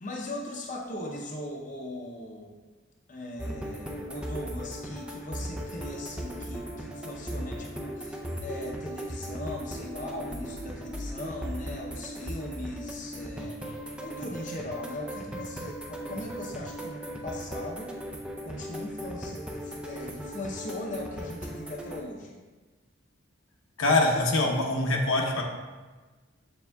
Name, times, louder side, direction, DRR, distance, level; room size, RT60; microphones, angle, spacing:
voice 1, 0.0-2.6 3.1-13.7 14.0-17.9 18.4-22.4, left 1 dB, 35° left, -1 dB, 0.7 m, -39 dB
sound 1, 3.4-22.0, equal, 5° right, 0.5 m, -38 dB
voice 2, 23.8-25.4, left 2 dB, 85° left, 0 dB, 1.0 m, -24 dB
7.0 x 6.6 x 2.3 m, 1.3 s
head